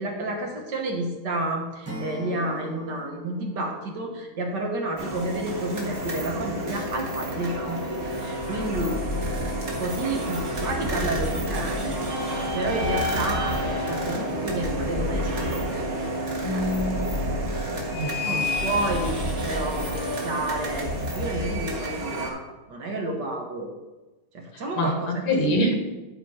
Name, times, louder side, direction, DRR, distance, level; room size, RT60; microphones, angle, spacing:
voice 1, 0.0-9.0 9.8-12.0 12.3-15.7 16.5-16.7 18.2-19.2 19.4-23.7 24.3-25.2, right 2 dB, 55° right, 2 dB, 1.6 m, -30 dB
Acoustic guitar / Strum, 1.8-4.9, left 1 dB, 10° right, 1.0 m, -39 dB
sound 1, 5.0-22.3, equal, 35° right, 1.8 m, -29 dB
voice 2, 16.4-17.0 17.9-18.4 24.5-25.7, equal, 75° left, 2 dB, 2.5 m, -26 dB
11.5 x 4.5 x 5.5 m, 1.1 s
omnidirectional pair, 2.4 m